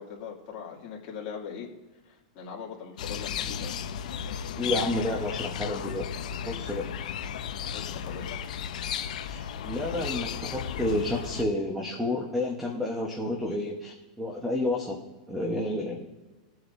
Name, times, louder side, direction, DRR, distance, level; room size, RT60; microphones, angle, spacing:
voice 1, 0.0-1.7 2.0-3.7 7.7-8.4, left 6 dB, 35° left, -4 dB, 2.5 m, -41 dB
sound 1, 3.0-11.4, left 8 dB, 70° left, 0.7 m, -34 dB
voice 2, 4.6-6.1 6.4-6.9 9.2-9.4 9.6-15.0 15.3-16.2, left 1 dB, 5° right, 0 dB, 1.1 m, -30 dB
22.0 x 7.8 x 2.7 m, 1.2 s
supercardioid pair, 165°, 4 cm